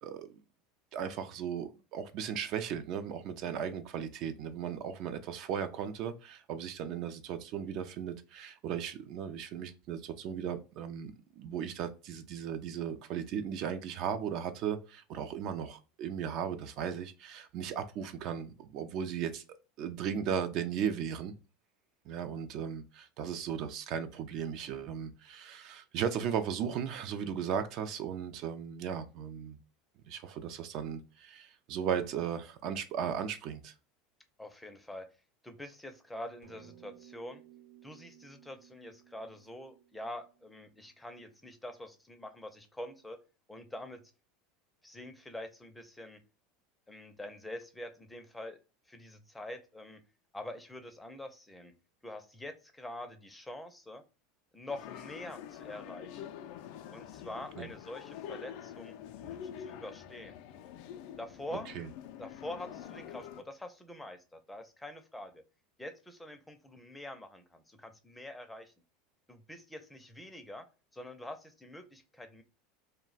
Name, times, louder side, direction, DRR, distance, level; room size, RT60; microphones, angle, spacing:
voice 1, 0.9-19.4 19.8-21.3 22.1-29.6 30.1-33.7 57.6-57.7 61.7-61.9, right 8 dB, 55° right, 0.4 m, -36 dB
voice 2, 34.4-35.1 35.4-37.4 37.8-43.2 43.5-44.0 44.8-46.2 46.9-48.6 48.9-50.0 50.3-51.7 52.0-54.0 54.5-56.2 56.9-58.9 59.2-60.4 61.2-61.7 62.2-65.4 65.8-68.7 69.3-70.6 70.9-72.4, left 1 dB, 5° left, 0.5 m, -45 dB
sound 1, 36.4-41.1, right 12 dB, 80° right, 1.0 m, -58 dB
sound 2, 54.7-63.4, left 9 dB, 65° left, 0.3 m, -46 dB
2.2 x 2.1 x 3.9 m
supercardioid pair, 110°, 0 cm